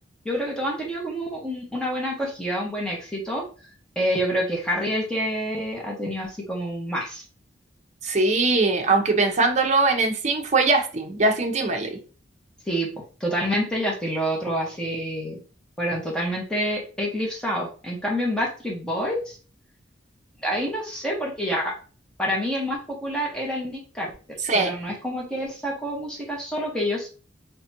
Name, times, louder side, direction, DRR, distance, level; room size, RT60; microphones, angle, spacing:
voice 1, 0.2-3.4 3.9-7.2 12.7-12.9 13.2-15.4 15.8-19.4 20.4-21.7 22.2-24.1 24.5-27.1, equal, 5° left, -3 dB, 1.4 m, -27 dB
voice 2, 8.0-12.0 24.4-24.7, right 3 dB, 40° right, 3 dB, 0.8 m, -21 dB
3.9 x 3.6 x 2.9 m, 0.37 s
head